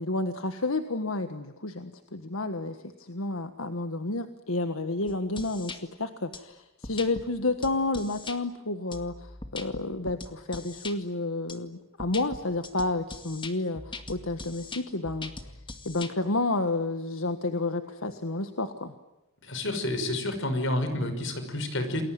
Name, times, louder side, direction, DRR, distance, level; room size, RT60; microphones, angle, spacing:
voice 1, 0.0-15.5 15.9-18.9, left 2 dB, 90° left, 8 dB, 1.6 m, -30 dB
sound 1, 5.1-5.8 6.3-6.4 6.8-7.3 7.6-8.4 8.9-11.0 11.5-11.6 12.0-16.1, left 3 dB, 25° left, 2.1 m, -41 dB
voice 2, 19.4-22.0, left 1 dB, 65° left, 9 dB, 5.8 m, -29 dB
29.0 x 21.5 x 9.4 m, 0.98 s
head